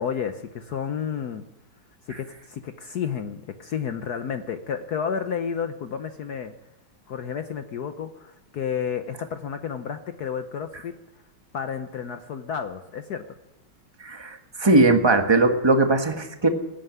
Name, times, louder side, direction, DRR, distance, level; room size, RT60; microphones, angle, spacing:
voice 1, 0.0-1.4 2.1-6.5 7.1-10.9 11.5-13.2, left 7 dB, 60° left, 8 dB, 1.2 m, -31 dB
voice 2, 14.0-16.5, right 2 dB, 15° right, 5 dB, 1.2 m, -19 dB
16.5 x 9.3 x 9.2 m, 0.99 s
omnidirectional pair, 2.2 m